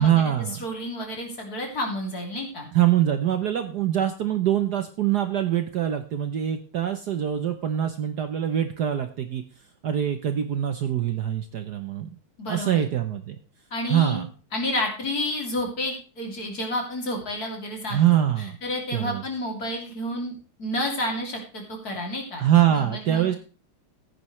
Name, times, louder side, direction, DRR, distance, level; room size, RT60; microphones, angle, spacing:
voice 1, 0.0-0.6 2.7-9.4 9.8-12.1 12.5-13.4 13.9-14.3 17.9-18.6 18.9-19.2 22.4-23.4, right 11 dB, 60° right, 8 dB, 1.2 m, -24 dB
voice 2, 0.6-2.7 12.4-12.9 13.7-14.2 14.5-18.2 18.6-23.4, left 1 dB, 45° left, 1 dB, 3.2 m, -30 dB
15.5 x 9.4 x 3.2 m, 0.37 s
omnidirectional pair, 2.3 m